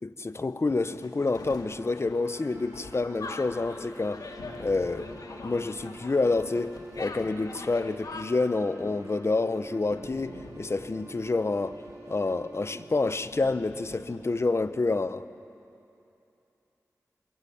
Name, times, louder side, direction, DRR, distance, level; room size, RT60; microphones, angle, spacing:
voice 1, 0.0-4.2 4.6-5.1 5.4-11.8 12.1-15.3, left 3 dB, 45° left, 0.9 m, -28 dB
sound 1, 0.8-15.1, left 3 dB, 85° left, 1.9 m, -50 dB
sound 2, 2.2-14.0, right 2 dB, 50° right, 4.4 m, -49 dB
sound 3, 3.2-8.3, left 3 dB, 70° left, 1.7 m, -42 dB
22.5 x 22.5 x 8.7 m
cardioid pair, 45°, 6 cm